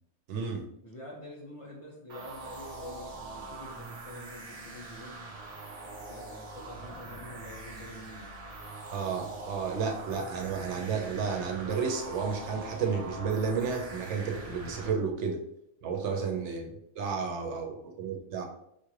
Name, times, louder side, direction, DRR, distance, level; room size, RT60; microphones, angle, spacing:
voice 1, 0.3-0.7 8.9-15.4 15.8-16.7 17.0-18.4, right 5 dB, 70° right, 3 dB, 0.9 m, -32 dB
voice 2, 0.8-5.2 5.9-8.3 15.9-16.3, left 1 dB, 30° left, -4 dB, 0.7 m, -46 dB
sound 1, 2.1-14.9, right 2 dB, 40° right, 0.5 m, -43 dB
4.4 x 2.4 x 3.1 m, 0.76 s
omnidirectional pair, 1.3 m